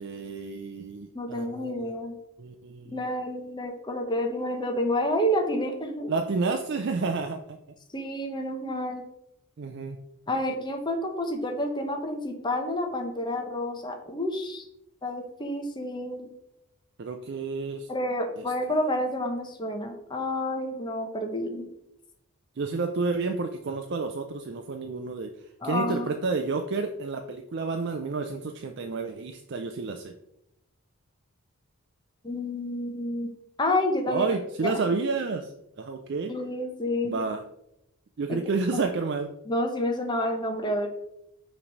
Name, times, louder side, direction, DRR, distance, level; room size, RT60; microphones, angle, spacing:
voice 1, 0.0-1.9 2.4-3.0 6.1-7.6 9.6-10.0 17.0-17.9 18.4-18.5 22.6-25.3 25.6-30.1 34.1-36.3 37.0-37.4 38.2-39.3, right 4 dB, 50° right, 5 dB, 0.4 m, -30 dB
voice 2, 1.1-2.2 2.9-6.1 7.9-9.0 10.3-14.7 15.0-16.3 17.9-21.7 25.6-26.1 32.2-33.3 33.6-34.3 34.6-34.8 36.3-37.2 38.3-38.4 38.7-38.9 39.5-40.9, left 1 dB, 20° left, 4 dB, 0.8 m, -29 dB
5.9 x 3.2 x 5.2 m, 0.81 s
head